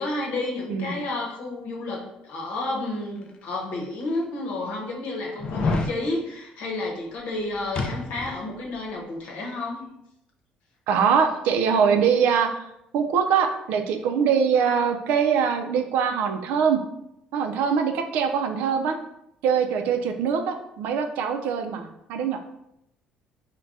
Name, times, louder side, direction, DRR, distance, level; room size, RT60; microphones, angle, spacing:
voice 1, 0.0-9.8, left 2 dB, 75° left, 0 dB, 0.8 m, -31 dB
sound 1, 3.4-3.5 4.2-4.3 5.4-6.0 7.8-8.4 8.7-8.8, left 3 dB, 35° left, 0.3 m, -27 dB
voice 2, 10.9-12.6 12.9-16.8 17.3-19.0 19.4-22.4, right 7 dB, 75° right, 6 dB, 0.4 m, -23 dB
4.6 x 2.2 x 2.6 m, 0.81 s
cardioid pair, 155°, 3 cm